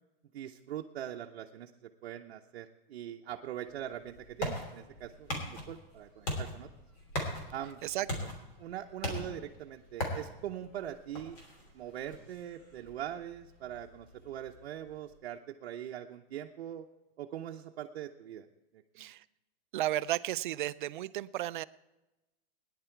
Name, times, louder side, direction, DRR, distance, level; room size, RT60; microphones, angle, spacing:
voice 1, 0.3-1.7 2.0-5.4 5.7-6.7 7.5-7.8 8.6-11.4 11.7-16.8 17.2-18.5 18.7-19.1, right 11 dB, 70° right, 1 dB, 0.8 m, -42 dB
sound 1, 3.7-15.1, left 1 dB, 35° left, 2.9 m, -41 dB
voice 2, 7.8-8.3 19.0-19.2 19.7-21.6, right 14 dB, 55° right, 15 dB, 0.5 m, -34 dB
18.0 x 10.5 x 4.5 m, 0.99 s
supercardioid pair, 175°, 31 cm